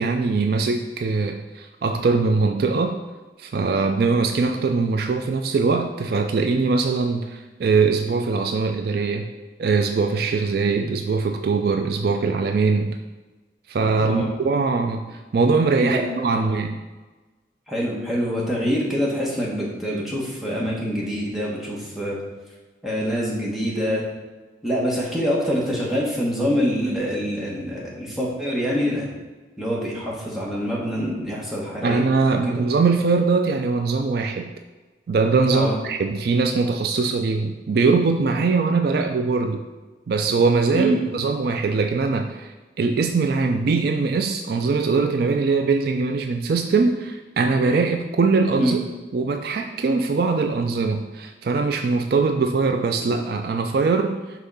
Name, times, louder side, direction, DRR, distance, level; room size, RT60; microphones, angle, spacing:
voice 1, 0.0-3.0 3.4-9.2 9.6-13.0 13.7-16.8 31.8-34.5 35.1-39.6 40.1-48.8 49.1-54.2, right 4 dB, 55° right, 6 dB, 0.3 m, -22 dB
voice 2, 15.8-16.5 17.7-22.2 22.8-24.0 24.6-29.1 29.6-32.0 32.3-32.6 35.5-35.7 40.7-41.0 48.6-48.8 53.0-53.2, equal, ahead, -5 dB, 1.2 m, -25 dB
5.7 x 3.6 x 5.4 m, 1.2 s
head